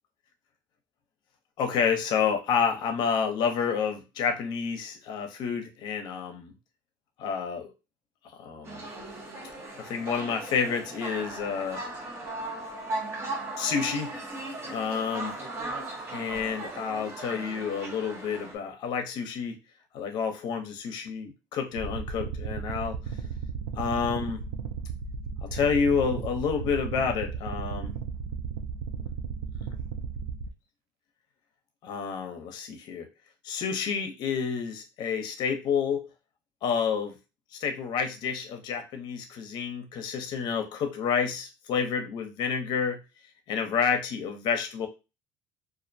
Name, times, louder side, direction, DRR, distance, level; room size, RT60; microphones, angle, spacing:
voice 1, 1.6-6.5 7.2-7.7 8.4-8.9 9.8-11.8 13.6-14.1 14.6-15.3 16.1-19.6 19.9-23.0 23.7-24.4 25.4-27.9 29.6-29.7 31.8-33.1 33.4-36.1 36.6-37.2 37.5-43.0 43.5-44.9, left 6 dB, 60° left, 5 dB, 0.6 m, -29 dB
sound 1, 8.6-18.6, right 2 dB, 30° right, 0.8 m, -37 dB
sound 2, 21.7-30.5, right 5 dB, 85° right, 0.4 m, -35 dB
2.4 x 2.1 x 2.6 m, 0.27 s
cardioid pair, 125°, 9 cm